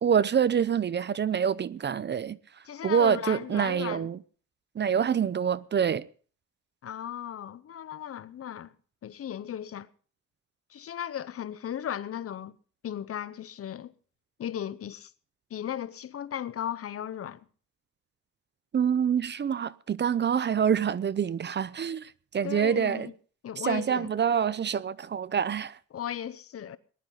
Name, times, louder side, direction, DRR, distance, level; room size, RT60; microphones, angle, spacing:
voice 1, 0.0-2.4 2.8-4.2 4.8-6.1 18.7-23.1 23.6-25.8, right 8 dB, 35° right, 0.6 m, -26 dB
voice 2, 2.7-4.1 6.8-8.7 9.0-9.9 10.7-12.6 12.8-13.9 14.4-15.1 15.5-17.4 22.4-23.1 23.4-24.1 25.9-26.8, left 10 dB, 50° left, 0.8 m, -36 dB
19.5 x 11.5 x 3.9 m
cardioid pair, 90°, 30 cm